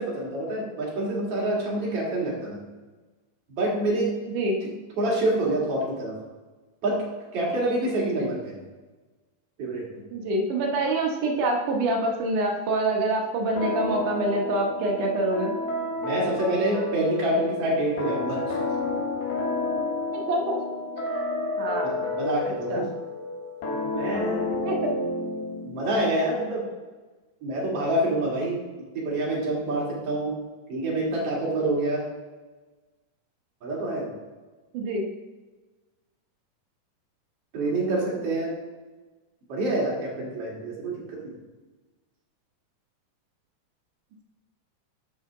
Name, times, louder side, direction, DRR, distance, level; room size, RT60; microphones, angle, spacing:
voice 1, 0.0-2.6 3.6-4.1 5.0-6.1 6.8-7.0 7.3-8.5 9.6-9.8 16.0-18.4 21.8-22.9 23.7-24.4 25.6-26.6 27.4-28.6 28.9-30.3 30.7-32.0 33.6-34.1 37.5-38.5 39.5-41.3, right 1 dB, 45° right, -4 dB, 3.2 m, -27 dB
voice 2, 4.3-4.6 8.1-8.3 10.1-15.5 20.1-20.6 21.0-21.1 21.6-22.0 22.7-22.8 24.6-24.8 34.7-35.1, right 2 dB, 70° right, 1 dB, 2.4 m, -26 dB
sound 1, 13.6-26.0, left 2 dB, 90° left, 3.6 m, -30 dB
11.0 x 6.3 x 3.7 m, 1.2 s
omnidirectional pair, 4.2 m